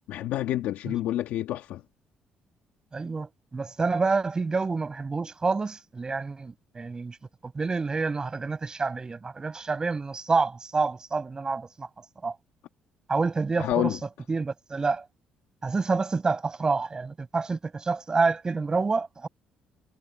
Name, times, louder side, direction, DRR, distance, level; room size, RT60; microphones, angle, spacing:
voice 1, 0.1-1.8 13.6-14.0, left 13 dB, 85° left, 1.3 m, -28 dB
voice 2, 2.9-7.2 7.4-12.4 13.1-14.0 14.3-15.1 15.6-19.3, right 4 dB, 25° right, 6.0 m, -28 dB
cardioid pair, 115°, 3 cm